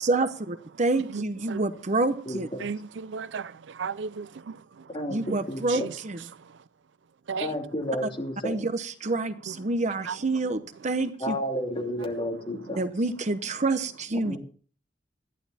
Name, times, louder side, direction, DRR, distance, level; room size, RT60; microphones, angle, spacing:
voice 1, 0.0-2.5 5.1-6.3 8.4-11.4 12.8-14.4, right 2 dB, 40° right, 0.8 m, -28 dB
voice 2, 1.1-1.7 2.6-5.4 5.7-6.0 6.3-6.6 7.3-7.6 9.1-9.2 9.5-9.7 10.0-10.4 12.0-12.7, right 6 dB, 70° right, 0.5 m, -37 dB
voice 3, 2.3-2.6 4.9-5.2 5.5-5.9 7.4-8.6 11.2-12.8 14.2-14.4, equal, 30° left, 3.0 m, -31 dB
14.0 x 11.5 x 4.2 m
head